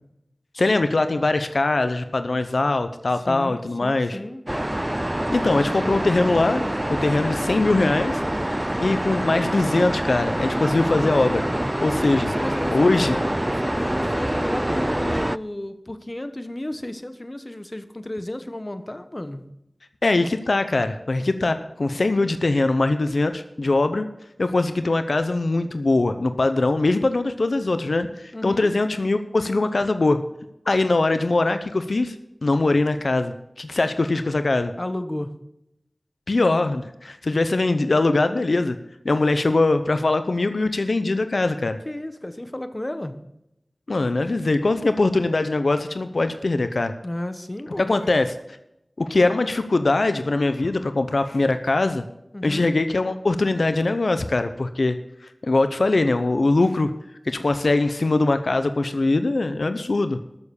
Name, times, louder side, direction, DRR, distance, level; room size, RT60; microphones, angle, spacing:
voice 1, 0.5-4.2 5.3-8.2 8.8-11.4 11.8-12.3 12.7-13.2 20.0-24.1 24.4-30.2 30.7-32.2 32.4-34.7 36.3-38.8 39.0-41.8 43.9-46.9 47.9-48.3 49.0-52.0 52.4-55.0 55.2-56.9 57.2-60.2, left 2 dB, 80° left, 10 dB, 0.7 m, -22 dB
voice 2, 3.3-4.4 12.0-19.4 28.3-28.7 34.8-35.3 41.8-43.2 47.0-48.1 52.3-52.7, left 1 dB, 30° left, 10 dB, 1.2 m, -33 dB
sound 1, 4.5-15.4, right 1 dB, 20° right, 0.4 m, -26 dB
13.5 x 7.2 x 7.1 m, 0.84 s
wide cardioid pair, 50°, 0 cm